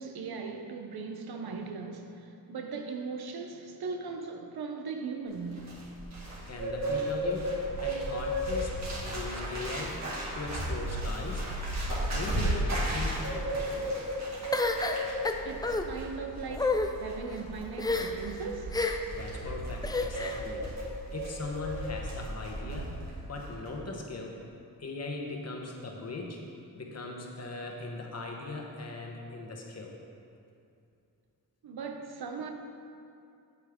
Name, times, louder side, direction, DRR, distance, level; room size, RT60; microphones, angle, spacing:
voice 1, 0.0-5.9 15.4-18.9 31.6-32.5, right 4 dB, 85° right, 0.8 m, -39 dB
Bird, 5.3-23.1 23.4-23.7, equal, 45° right, 2.2 m, -34 dB
voice 2, 6.5-11.5 12.0-13.9 19.2-20.7 21.1-24.4 24.8-26.4 26.7-29.9, left 3 dB, 45° left, 1.1 m, -39 dB
sound 1, 14.5-15.8 16.5-16.9 17.8-18.3 18.7-19.2 19.8-20.4, left 3 dB, 10° left, 0.3 m, -29 dB
8.4 x 8.2 x 3.7 m
wide cardioid pair, 140°, 36 cm